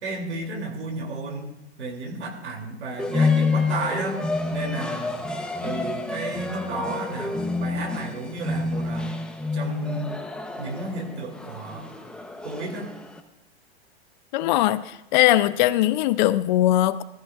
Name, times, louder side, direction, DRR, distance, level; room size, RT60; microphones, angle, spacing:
voice 1, 0.0-1.5 1.8-4.2 4.5-5.1 5.6-9.2 9.5-10.2 10.6-11.9 12.4-12.9, right 3 dB, 85° right, 2 dB, 2.9 m, -33 dB
sound 1, 3.0-13.2, left 3 dB, 5° left, 0.8 m, -28 dB
voice 2, 14.3-17.0, left 14 dB, 45° left, 15 dB, 0.5 m, -20 dB
14.5 x 14.0 x 2.4 m, 0.86 s
hypercardioid pair, 125°, 32 cm